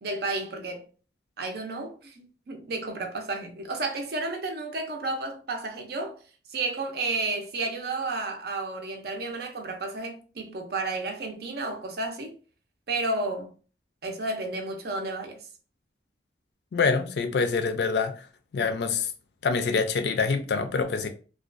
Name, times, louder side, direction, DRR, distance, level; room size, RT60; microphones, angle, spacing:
voice 1, 0.0-0.9 1.4-6.2 6.5-12.3 12.9-13.5 14.0-15.4, right 2 dB, 60° right, 0.5 m, -32 dB
voice 2, 16.7-18.3 18.5-19.1 19.4-21.1, left 4 dB, 65° left, 0.4 m, -25 dB
2.4 x 2.2 x 2.5 m
head